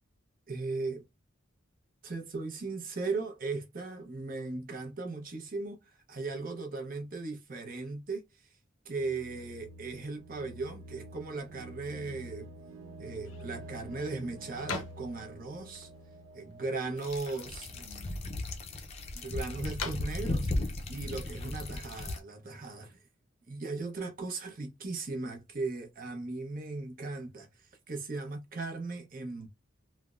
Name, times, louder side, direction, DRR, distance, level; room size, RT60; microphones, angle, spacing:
voice 1, 0.5-1.0 2.0-8.5 8.8-12.5 13.0-15.9 16.3-18.2 19.1-20.5 20.9-23.0 23.5-29.5, right 3 dB, 45° right, 0.7 m, -38 dB
sound 1, 9.0-18.8, right 1 dB, 85° right, 0.4 m, -49 dB
sound 2, 13.0-22.2, left 4 dB, 85° left, 0.6 m, -47 dB
sound 3, 17.0-22.2, left 2 dB, 30° left, 0.5 m, -36 dB
3.3 x 2.0 x 2.4 m
head